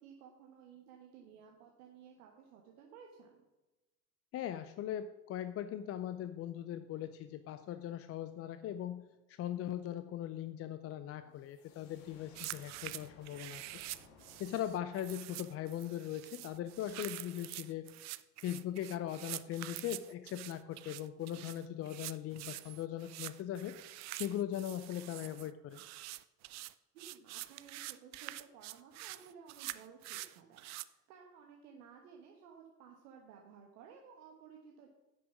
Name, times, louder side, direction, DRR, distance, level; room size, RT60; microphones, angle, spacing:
voice 1, 0.0-3.4 26.9-34.9, right 7 dB, 70° right, 1 dB, 1.4 m, -56 dB
voice 2, 4.3-13.8 14.4-17.9 18.4-23.8 24.1-25.8, left 11 dB, 30° left, 11 dB, 0.5 m, -40 dB
sound 1, 11.3-16.9, left 4 dB, 65° left, 2.0 m, -62 dB
sound 2, 12.3-30.8, right 18 dB, 40° right, 0.4 m, -46 dB
10.5 x 6.2 x 6.0 m, 1.1 s
hypercardioid pair, 70°, 47 cm